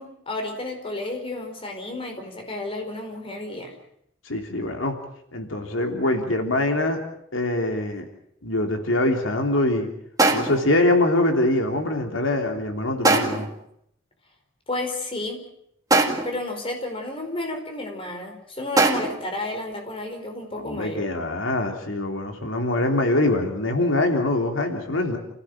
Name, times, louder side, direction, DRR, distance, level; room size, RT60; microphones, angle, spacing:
voice 1, 0.0-3.7 14.7-15.4 16.2-21.1, left 2 dB, 30° left, 4 dB, 4.7 m, -32 dB
voice 2, 4.2-4.9 5.3-7.0 7.3-8.0 8.4-9.9 10.3-13.5 20.5-25.2, left 2 dB, 85° left, 4 dB, 3.2 m, -23 dB
sound 1, 7.9-8.0 10.2-10.8 13.0-13.6 15.9-16.5 18.8-19.3, right 2 dB, 20° right, 2.2 m, -21 dB
29.0 x 16.0 x 7.6 m, 0.73 s
head